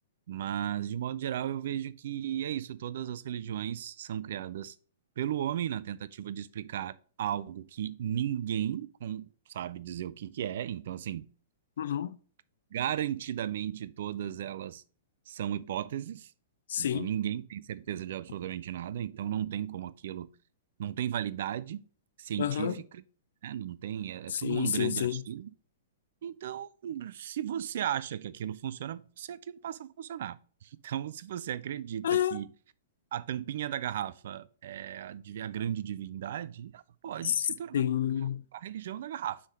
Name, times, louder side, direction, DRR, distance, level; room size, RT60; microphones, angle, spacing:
voice 1, 0.3-4.8 5.2-11.3 12.7-14.8 15.3-16.3 16.8-20.3 20.8-21.8 22.2-23.0 23.4-25.5 26.2-32.5 33.1-37.8 38.5-39.4, right 10 dB, 55° right, 0.3 m, -35 dB
voice 2, 11.8-12.2 16.7-17.1 22.4-22.8 24.3-25.2 32.0-32.4 37.2-38.4, left 10 dB, 55° left, 0.5 m, -29 dB
6.1 x 3.7 x 5.0 m
figure-of-eight pair, 105°, 0 cm